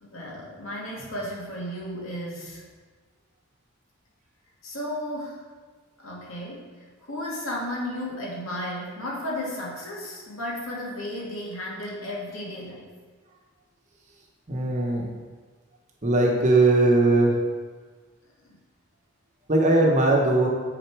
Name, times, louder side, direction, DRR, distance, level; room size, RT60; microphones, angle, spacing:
voice 1, 0.0-2.6 4.6-5.4 6.0-6.7 7.0-12.9 18.5-18.6, left 1 dB, 80° left, -4 dB, 2.2 m, -34 dB
voice 2, 14.5-15.1 16.0-17.3 19.5-20.5, right 2 dB, 35° right, -1 dB, 1.0 m, -19 dB
9.2 x 4.1 x 4.7 m, 1.5 s
head